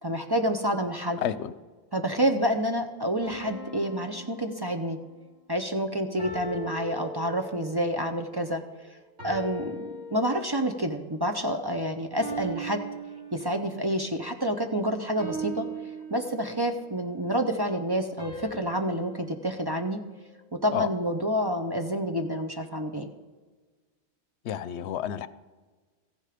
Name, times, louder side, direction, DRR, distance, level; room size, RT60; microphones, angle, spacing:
voice 1, 0.0-1.2 1.9-5.0 5.5-8.6 9.2-12.8 13.3-15.7 16.1-20.0 20.5-23.1, equal, 25° right, 5 dB, 0.7 m, -28 dB
voice 2, 1.2-1.5 20.7-20.9 24.4-25.3, left 10 dB, 80° left, 15 dB, 0.9 m, -30 dB
sound 1, 3.2-5.1 6.2-7.8 9.2-10.8 12.2-13.9 15.2-16.8 18.2-20.5, right 3 dB, 75° right, 5.4 m, -40 dB
14.5 x 10.0 x 5.0 m, 1.3 s
omnidirectional pair, 1.1 m